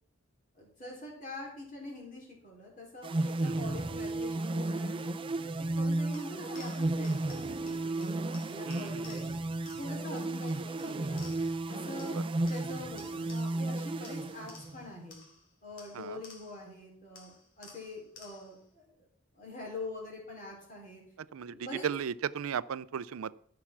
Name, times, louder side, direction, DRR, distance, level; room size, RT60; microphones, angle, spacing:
voice 1, 0.6-5.2 5.6-9.3 9.7-11.3 11.7-12.2 12.5-15.2 15.6-17.3 17.6-18.8 19.3-21.0 21.5-21.9, left 2 dB, 40° left, -2 dB, 4.1 m, -44 dB
sound 1, 3.0-14.9, right 2 dB, 25° right, 0.4 m, -33 dB
sound 2, 6.1-11.7 12.0-13.7 14.0-16.7 17.2-18.6, left 3 dB, 65° left, 2.8 m, -55 dB
voice 2, 8.7-9.1 12.1-12.2 15.9-16.2 21.3-21.6 21.8-23.3, right 7 dB, 85° right, 19 dB, 0.4 m, -35 dB
14.5 x 5.9 x 6.0 m, 0.63 s
head